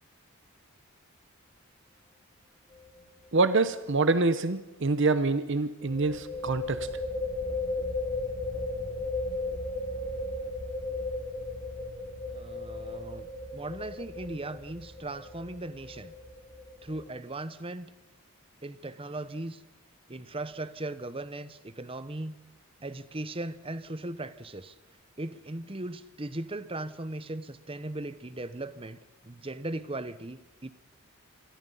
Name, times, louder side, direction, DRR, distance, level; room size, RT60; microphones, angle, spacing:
sound 1, 2.7-3.0 3.2-3.3 5.8-17.2, left 2 dB, 20° left, 3.1 m, -35 dB
voice 1, 3.3-6.9, right 3 dB, 55° right, 12 dB, 0.9 m, -26 dB
voice 2, 12.3-16.1 16.8-17.9 18.6-19.6 20.1-22.4 22.8-24.7 25.2-29.0 29.2-30.7, right 2 dB, 25° right, 14 dB, 0.9 m, -38 dB
27.0 x 20.5 x 5.6 m, 1.1 s
head